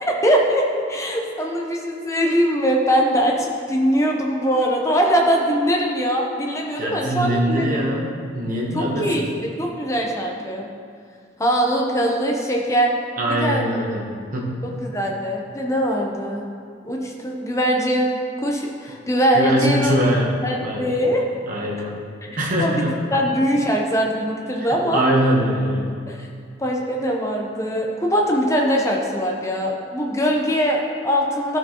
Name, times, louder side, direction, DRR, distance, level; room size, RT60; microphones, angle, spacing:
voice 1, 0.0-7.8 8.7-9.3 9.6-10.7 11.4-12.9 13.3-13.7 14.6-16.4 16.8-18.1 18.4-20.0 20.4-21.3 22.3-22.9 23.1-25.0 26.1-26.3 26.6-31.6, equal, 15° left, 0 dB, 0.7 m, -22 dB
voice 2, 6.8-9.3 13.2-14.8 19.3-20.3 20.6-20.9 21.5-22.0 22.4-22.9 24.6-24.7 24.9-25.9, right 1 dB, 40° right, -3 dB, 1.1 m, -22 dB
12.0 x 4.5 x 2.9 m, 2.2 s
head